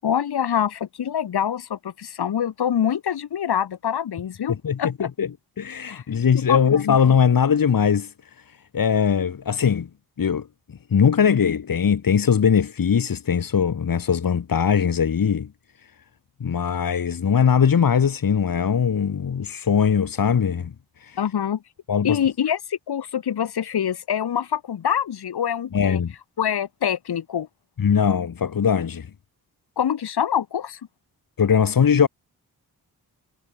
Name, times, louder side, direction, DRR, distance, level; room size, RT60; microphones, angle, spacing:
voice 1, 0.0-5.1 5.9-6.0 6.5-7.0 21.2-21.6 22.0-26.0 26.4-27.5 29.8-30.8, left 9 dB, 80° left, 7.3 m, -25 dB
voice 2, 4.6-5.3 5.6-8.1 8.7-9.9 10.2-10.5 10.9-15.5 16.4-20.7 21.0-21.2 21.9-22.2 25.7-26.1 27.8-29.1 31.4-32.1, left 7 dB, 60° left, 5.1 m, -20 dB
cardioid pair, 100°, 38 cm